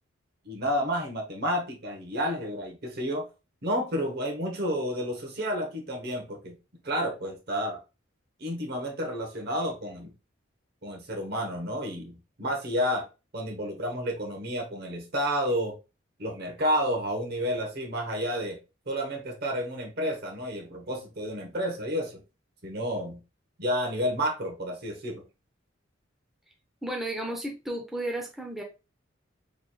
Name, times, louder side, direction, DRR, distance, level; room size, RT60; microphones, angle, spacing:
voice 1, 0.4-3.3 3.6-6.6 6.8-7.8 8.4-10.1 10.8-13.1 13.3-15.7 16.2-18.6 18.9-22.2 22.6-23.2 23.6-25.2, equal, 55° right, 2 dB, 1.0 m, -30 dB
voice 2, 26.8-28.6, right 1 dB, ahead, 0 dB, 0.5 m, -33 dB
4.1 x 3.2 x 2.2 m, 0.29 s
head